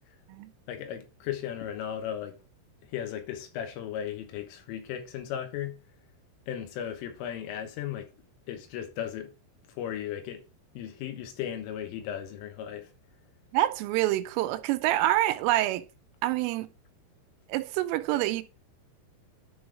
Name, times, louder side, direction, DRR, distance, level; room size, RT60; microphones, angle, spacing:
voice 1, 0.7-2.4 2.8-5.8 6.5-8.1 8.5-9.3 9.8-10.4 10.8-12.9, left 10 dB, 90° left, 3.8 m, -36 dB
voice 2, 13.5-15.8 16.2-16.7 17.5-18.4, right 15 dB, 90° right, 3.2 m, -26 dB
10.5 x 3.9 x 4.8 m
omnidirectional pair, 5.7 m